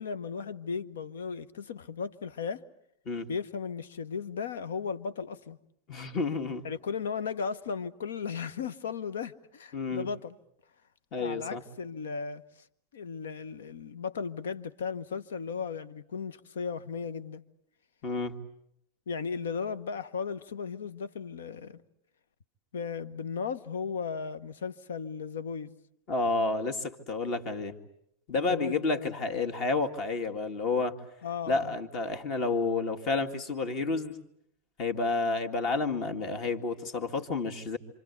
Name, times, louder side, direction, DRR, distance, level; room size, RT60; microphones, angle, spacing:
voice 1, 0.0-2.6 3.3-5.6 6.6-10.4 11.1-12.4 12.9-17.4 19.1-21.8 22.7-25.8 28.3-29.1 31.2-31.7, left 6 dB, 65° left, 1.0 m, -36 dB
voice 2, 5.9-6.6 9.7-10.1 11.1-11.6 18.0-18.4 26.1-27.7 28.3-31.0 31.5-34.2 34.8-37.8, left 3 dB, 40° left, 2.1 m, -30 dB
27.5 x 26.5 x 8.2 m
figure-of-eight pair, 90°, 0 cm